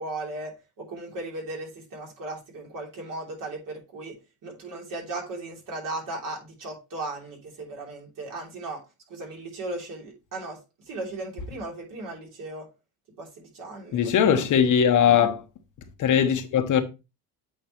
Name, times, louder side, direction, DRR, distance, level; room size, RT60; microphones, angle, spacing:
voice 1, 0.0-4.2 4.4-8.8 9.1-10.6 10.9-12.7 13.2-14.0 15.2-15.3, right 2 dB, 55° right, 3.3 m, -36 dB
voice 2, 13.9-15.4 16.0-16.8, left 8 dB, 50° left, 1.1 m, -20 dB
8.4 x 4.6 x 3.0 m
cardioid pair, 120°, 39 cm